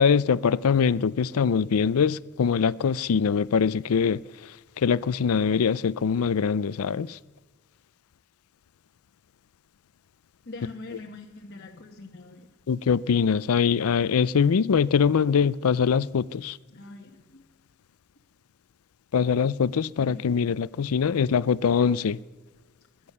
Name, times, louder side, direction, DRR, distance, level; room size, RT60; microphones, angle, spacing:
voice 1, 0.0-4.2 4.8-7.1 12.7-16.5 19.1-22.2, left 6 dB, 80° left, 0.4 m, -23 dB
voice 2, 10.5-12.5 16.7-17.4 20.0-20.5, left 3 dB, 50° left, 1.1 m, -43 dB
21.5 x 8.9 x 6.7 m
head